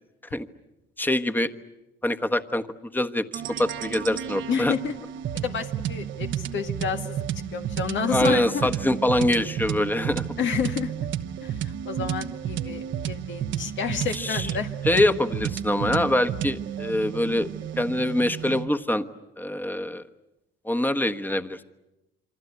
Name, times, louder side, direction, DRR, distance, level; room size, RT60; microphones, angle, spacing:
voice 1, 1.0-1.5 2.0-2.7 2.9-3.3 3.6-4.7 8.1-10.2 14.1-14.5 14.8-17.5 17.8-19.0 19.4-20.0 20.6-21.6, left 1 dB, 10° left, 8 dB, 1.3 m, -24 dB
sound 1, 3.3-18.7, right 10 dB, 75° right, 1.0 m, -32 dB
voice 2, 4.5-4.9 5.3-7.2 7.5-8.7 10.4-10.9 11.4-14.7, left 7 dB, 70° left, 6 dB, 1.7 m, -30 dB
27.5 x 25.0 x 8.4 m, 0.95 s
cardioid pair, 90°, 20 cm